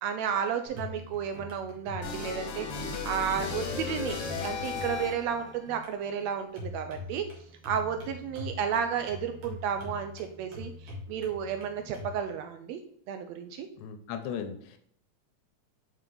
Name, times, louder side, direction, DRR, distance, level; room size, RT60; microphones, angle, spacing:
voice 1, 0.0-7.2 7.6-12.8 13.1-13.7, right 8 dB, 80° right, 7 dB, 1.6 m, -32 dB
sound 1, 0.7-12.2, left 1 dB, 55° right, 2.4 m, -44 dB
sound 2, 2.0-5.4, left 5 dB, 65° left, 1.8 m, -35 dB
voice 2, 13.8-14.8, left 7 dB, 80° left, 7 dB, 2.0 m, -37 dB
5.7 x 5.6 x 3.8 m, 0.66 s
omnidirectional pair, 3.3 m